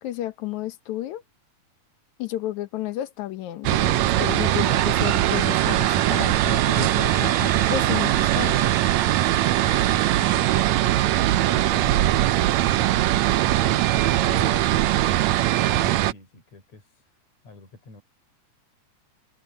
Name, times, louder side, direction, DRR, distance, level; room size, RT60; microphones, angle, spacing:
voice 1, 0.0-1.2 2.2-8.7, left 13 dB, 75° left, 2.3 m, -32 dB
sound 1, 3.6-16.1, right 14 dB, 75° right, 1.9 m, -21 dB
sound 2, 4.6-10.9, right 7 dB, 45° right, 1.6 m, -33 dB
voice 2, 10.0-13.3 13.9-14.9 15.8-18.0, left 5 dB, 60° left, 6.0 m, -44 dB
omnidirectional pair, 3.5 m